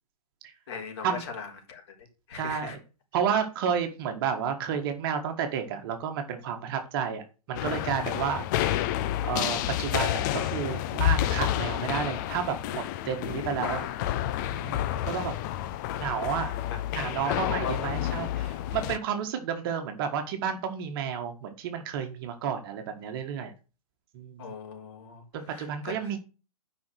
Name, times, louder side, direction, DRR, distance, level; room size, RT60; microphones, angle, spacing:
voice 1, 0.7-2.8 13.6-13.9 16.7-16.8 17.2-17.9 18.3-18.8 24.4-26.1, left 6 dB, 45° left, 4.2 m, -39 dB
voice 2, 2.4-2.8 3.1-8.7 9.2-13.9 14.5-15.3 16.0-16.5 16.9-23.5 24.1-24.5 25.3-26.2, right 7 dB, 35° right, 1.7 m, -31 dB
sound 1, 7.6-19.0, left 13 dB, 30° left, 0.7 m, -30 dB
10.5 x 5.7 x 6.4 m
figure-of-eight pair, 120°, 19 cm